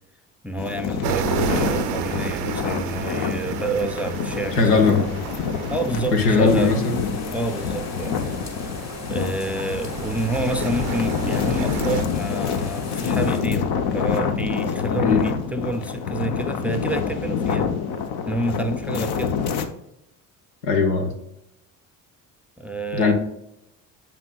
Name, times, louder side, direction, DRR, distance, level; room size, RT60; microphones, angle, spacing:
voice 1, 0.4-4.9 5.7-6.8 7.3-8.2 9.1-17.7 18.3-19.4 22.6-23.1, right 1 dB, 5° right, 7 dB, 0.5 m, -28 dB
sound 1, 0.6-19.7, left 6 dB, 55° left, 0.8 m, -27 dB
sound 2, 1.0-12.0, right 9 dB, 85° right, 0.6 m, -32 dB
voice 2, 4.6-5.0 6.1-6.9 15.0-15.2 20.6-21.1 22.9-23.1, left 4 dB, 85° left, 4 dB, 1.1 m, -18 dB
sound 3, 6.4-13.4, left 3 dB, 35° left, 1.3 m, -38 dB
7.3 x 5.9 x 2.3 m, 0.81 s
hypercardioid pair, 55°, 45 cm